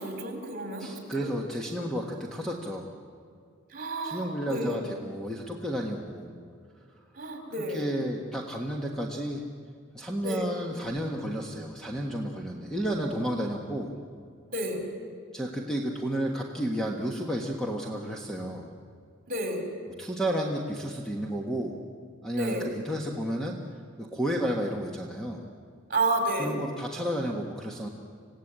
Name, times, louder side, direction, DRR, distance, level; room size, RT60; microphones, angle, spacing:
voice 1, 0.0-1.3 3.7-4.8 7.1-7.8 10.2-10.5 14.5-14.8 19.3-19.6 22.3-22.7 25.9-26.5, right 1 dB, 40° right, 3 dB, 4.3 m, -31 dB
voice 2, 0.8-2.9 4.0-6.3 7.7-9.4 9.9-14.0 15.3-18.7 20.0-21.8 22.2-23.6 24.0-25.4 26.4-27.9, equal, 5° left, 0 dB, 1.5 m, -32 dB
27.0 x 17.0 x 8.9 m, 2.2 s
head